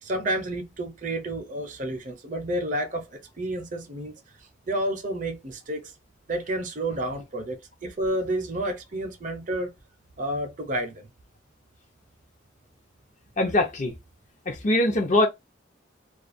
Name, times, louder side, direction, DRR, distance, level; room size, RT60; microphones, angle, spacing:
voice 1, 0.0-5.9 6.3-9.7 10.2-11.1, right 1 dB, 40° right, 0.6 m, -30 dB
voice 2, 13.4-13.9 14.5-15.3, left 1 dB, 40° left, 0.6 m, -22 dB
2.4 x 2.3 x 2.5 m
head